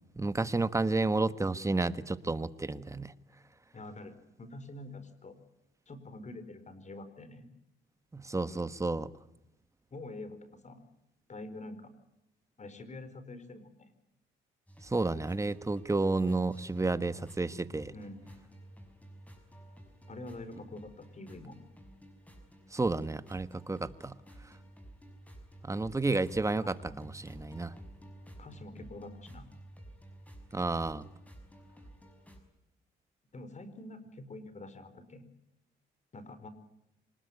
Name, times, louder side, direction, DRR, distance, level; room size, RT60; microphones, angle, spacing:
voice 1, 0.2-3.1 8.1-9.1 14.8-17.9 22.7-24.1 25.6-27.7 30.5-31.1, right 3 dB, 15° right, 13 dB, 1.3 m, -31 dB
voice 2, 3.7-5.3 5.9-7.5 9.9-10.8 11.3-11.9 12.6-13.9 17.9-18.3 20.1-21.6 26.5-27.0 28.4-29.5 33.3-35.2 36.1-36.5, left 2 dB, 35° left, 11 dB, 4.7 m, -46 dB
sound 1, 14.7-32.4, right 1 dB, 5° left, 6.1 m, -52 dB
25.5 x 20.0 x 9.6 m, 0.88 s
cardioid pair, 90°, 20 cm